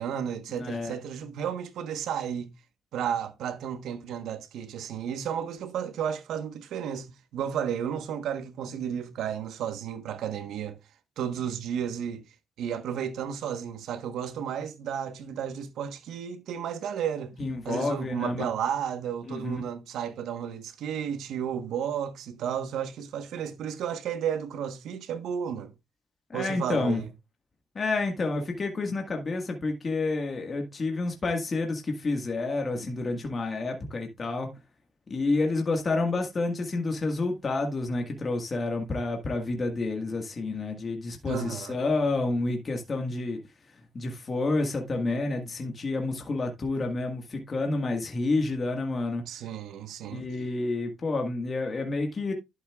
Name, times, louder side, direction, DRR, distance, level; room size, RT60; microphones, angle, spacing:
voice 1, 0.0-2.5 2.9-10.8 11.2-12.2 12.6-17.4 17.6-25.7 26.3-27.1 41.3-41.9 49.3-50.3, right 8 dB, 80° right, 1.2 m, -33 dB
voice 2, 0.6-0.9 17.4-18.5 19.3-19.6 26.3-27.0 27.8-34.5 35.1-43.4 43.9-49.2 50.1-52.3, left 3 dB, 35° left, 1.7 m, -29 dB
11.5 x 7.2 x 2.4 m
cardioid pair, 90°, 0 cm